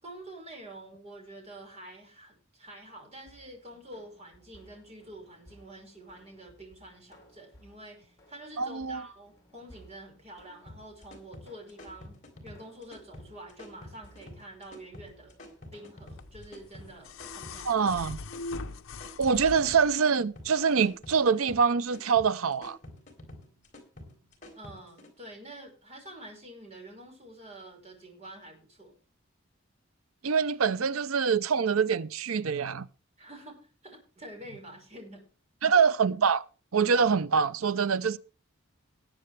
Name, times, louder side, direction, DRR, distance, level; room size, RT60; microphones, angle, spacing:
voice 1, 0.0-15.4 15.7-17.9 24.6-28.9 33.2-35.3, right 1 dB, 30° right, 5.5 m, -47 dB
sound 1, 3.2-17.9, equal, 15° left, 3.9 m, -59 dB
voice 2, 8.6-9.0 17.7-18.2 19.2-22.8 30.2-32.9 35.6-36.5 36.7-38.2, right 6 dB, 85° right, 0.6 m, -25 dB
sound 2, 10.7-25.1, left 1 dB, 35° left, 3.9 m, -48 dB
sound 3, 16.2-20.0 21.2-21.3, left 3 dB, 75° left, 0.8 m, -41 dB
20.0 x 7.8 x 3.4 m
head